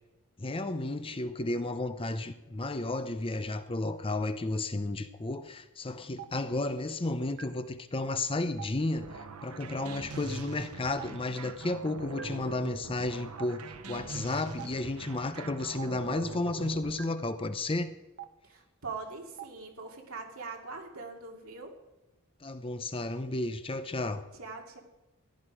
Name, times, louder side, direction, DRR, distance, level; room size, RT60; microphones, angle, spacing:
voice 1, 0.4-17.9 22.4-24.3, left 2 dB, 25° left, 0.6 m, -33 dB
Stream, 6.2-6.3 7.4-7.5 8.6-8.7 9.8-9.9 11.0-11.1 12.2-12.3 13.4-13.5 14.6-14.7 15.8-15.9 17.0-17.1 18.2-18.3 19.4-19.5, right 10 dB, 45° right, 0.8 m, -42 dB
sound 1, 8.9-17.0, right 4 dB, 85° right, 0.9 m, -43 dB
voice 2, 18.4-21.7 24.3-24.8, right 4 dB, 70° right, 2.6 m, -42 dB
15.5 x 11.0 x 4.9 m
head